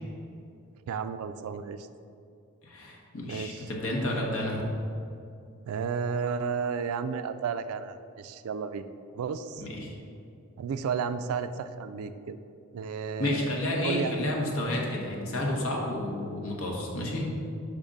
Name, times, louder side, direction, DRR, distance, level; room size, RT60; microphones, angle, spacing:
voice 1, 0.9-1.9 3.3-3.7 5.7-8.9 9.1-9.7 10.6-12.4 12.7-14.3, right 6 dB, 80° right, 11 dB, 0.3 m, -33 dB
voice 2, 2.6-4.6 9.6-9.9 13.2-17.3, left 1 dB, 75° left, -1 dB, 1.0 m, -31 dB
5.0 x 3.7 x 5.2 m, 2.5 s
head